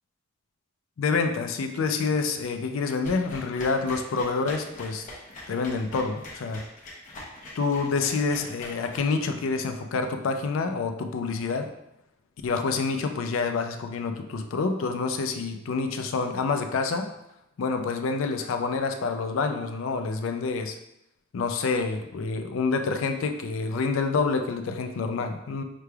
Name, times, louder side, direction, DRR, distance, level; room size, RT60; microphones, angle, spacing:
voice 1, 1.0-5.1 5.5-6.6 7.6-11.7 12.4-17.1 17.6-20.8 21.3-25.6, left 4 dB, 75° left, 6 dB, 0.4 m, -27 dB
sound 1, 3.0-9.5, left 1 dB, 40° left, 0.8 m, -42 dB
5.7 x 3.3 x 2.3 m, 0.84 s
head